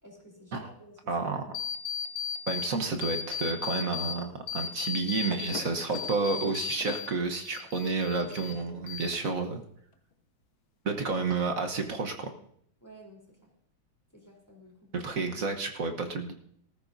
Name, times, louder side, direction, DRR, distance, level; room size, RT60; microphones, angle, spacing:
voice 1, 0.0-1.0 12.8-13.5 14.1-14.9, equal, 10° left, -2 dB, 3.4 m, -52 dB
voice 2, 1.1-1.4 2.5-9.6 10.8-12.3 14.9-16.3, right 4 dB, 50° right, 6 dB, 1.3 m, -30 dB
sound 1, 1.5-2.7 3.0-4.2 4.5-7.1 7.4-8.6 8.9-9.5, left 7 dB, 60° left, 1.1 m, -35 dB
19.0 x 14.0 x 2.7 m, 0.67 s
omnidirectional pair, 2.2 m